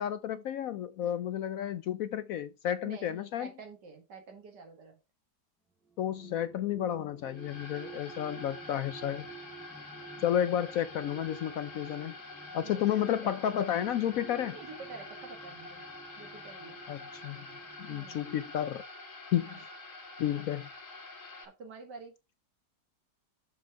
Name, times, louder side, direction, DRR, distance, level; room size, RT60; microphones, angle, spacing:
voice 1, 0.0-3.5 6.0-9.3 10.2-12.2 12.5-14.6 16.9-17.5 17.8-18.8 19.3-19.5 20.2-20.7, left 10 dB, 70° left, 0.8 m, -31 dB
voice 2, 2.8-5.0 12.6-12.9 13.2-13.4 14.4-15.8 16.2-16.8 17.9-18.3 19.4-19.6 21.4-22.1, right 4 dB, 75° right, 2.4 m, -48 dB
sound 1, 5.9-18.7, right 6 dB, ahead, 0.9 m, -52 dB
sound 2, 7.3-21.4, left 2 dB, 50° left, 2.1 m, -47 dB
7.0 x 5.4 x 4.5 m
omnidirectional pair, 1.8 m